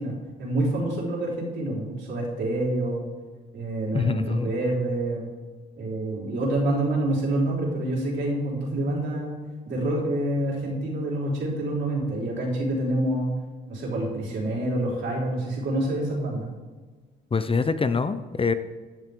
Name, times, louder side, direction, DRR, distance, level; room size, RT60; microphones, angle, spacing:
voice 1, 0.0-3.0 3.5-5.3 5.8-9.3 9.7-13.3 13.7-16.5, right 1 dB, 65° right, -4 dB, 4.7 m, -27 dB
voice 2, 3.9-4.5 17.3-18.5, left 4 dB, 25° left, 11 dB, 0.7 m, -24 dB
16.5 x 11.0 x 3.8 m, 1.4 s
cardioid pair, 90°, 20 cm